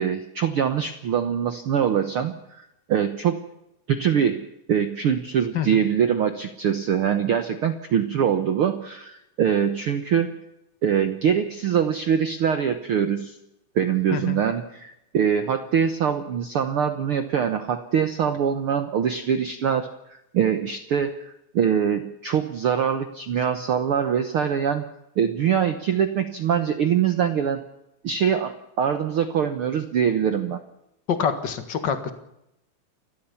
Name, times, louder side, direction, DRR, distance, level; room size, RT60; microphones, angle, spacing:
voice 1, 0.0-3.4 3.9-10.4 10.8-13.4 13.7-24.8 25.2-27.6 28.0-30.6, right 8 dB, 85° right, 9 dB, 1.2 m, -23 dB
voice 2, 14.1-14.4 31.1-32.1, left 7 dB, 40° left, 8 dB, 1.8 m, -26 dB
29.5 x 13.0 x 7.1 m, 0.85 s
omnidirectional pair, 4.1 m